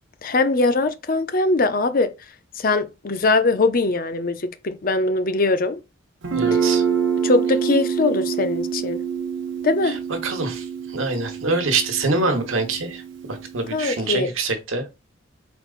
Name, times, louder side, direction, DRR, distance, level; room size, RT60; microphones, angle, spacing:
voice 1, 0.2-2.1 2.6-5.8 6.5-6.6 7.2-9.0 9.6-10.0 13.7-14.3, left 3 dB, 45° left, 0.6 m, -21 dB
Guitar, 6.2-13.9, right 7 dB, 65° right, 0.9 m, -26 dB
voice 2, 6.3-6.8 9.8-9.9 10.2-10.6 10.9-13.0 13.3-14.8, right 3 dB, 85° right, 1.2 m, -24 dB
4.4 x 3.9 x 2.5 m
head